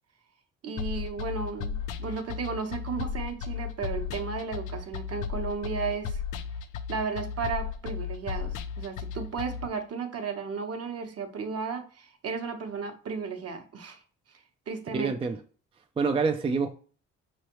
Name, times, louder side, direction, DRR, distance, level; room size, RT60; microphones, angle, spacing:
voice 1, 0.6-6.2 6.9-14.0 14.7-15.1, right 5 dB, 55° right, 1.0 m, -34 dB
sound 1, 0.8-9.7, left 7 dB, 85° left, 0.5 m, -35 dB
voice 2, 14.9-15.4 16.0-16.7, right 4 dB, 20° right, 0.4 m, -26 dB
5.2 x 3.2 x 3.0 m
cardioid pair, 90°, 30 cm